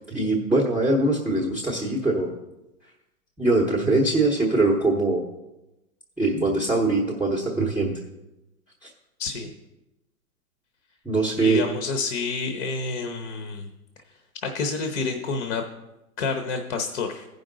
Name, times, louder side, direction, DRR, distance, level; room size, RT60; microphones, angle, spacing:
voice 1, 0.1-2.3 3.4-5.2 6.2-7.9 8.8-8.9 11.0-11.6, right 2 dB, 5° right, -5 dB, 0.7 m, -22 dB
voice 2, 9.2-9.5 11.4-13.7 14.4-15.6 16.2-17.3, left 4 dB, 50° left, 5 dB, 1.0 m, -28 dB
15.0 x 5.3 x 3.8 m, 0.95 s
hypercardioid pair, 135°, 45 cm